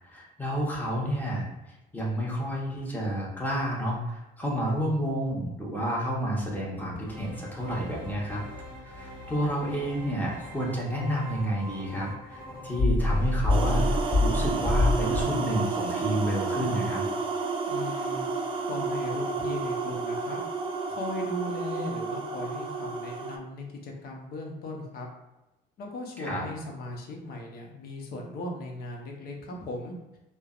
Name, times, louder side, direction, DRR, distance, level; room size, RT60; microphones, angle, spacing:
voice 1, 0.0-1.4 1.9-8.4 8.8-17.0 26.2-26.4, equal, 10° left, -4 dB, 0.9 m, -30 dB
sound 1, 7.0-15.2, left 2 dB, 25° left, 1.2 m, -29 dB
sound 2, 13.5-23.4, right 4 dB, 30° right, 0.3 m, -31 dB
voice 2, 17.7-18.3 18.7-20.4 20.9-25.1 25.8-30.0, left 2 dB, 65° left, 0 dB, 0.7 m, -37 dB
3.2 x 2.0 x 2.4 m, 0.97 s
cardioid pair, 110°, 17 cm